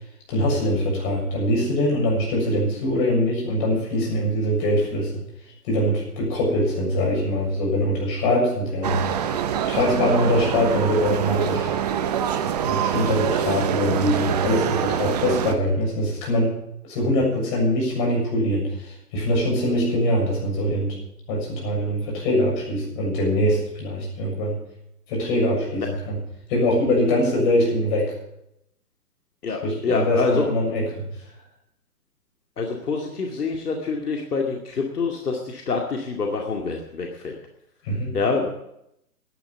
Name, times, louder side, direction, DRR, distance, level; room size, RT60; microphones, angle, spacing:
voice 1, 0.3-5.1 5.7-9.0 9.7-11.7 12.7-16.6 16.9-20.9 21.3-24.6 25.1-26.2 26.5-28.1 29.6-31.1 37.8-38.2, left 1 dB, 30° left, -2 dB, 7.1 m, -23 dB
sound 1, 8.8-15.5, right 8 dB, 25° right, 0.8 m, -25 dB
voice 2, 29.4-30.5 32.6-37.4 38.1-38.5, left 4 dB, 70° left, 1 dB, 2.4 m, -26 dB
11.0 x 10.5 x 9.4 m, 0.79 s
hypercardioid pair, 140°, 48 cm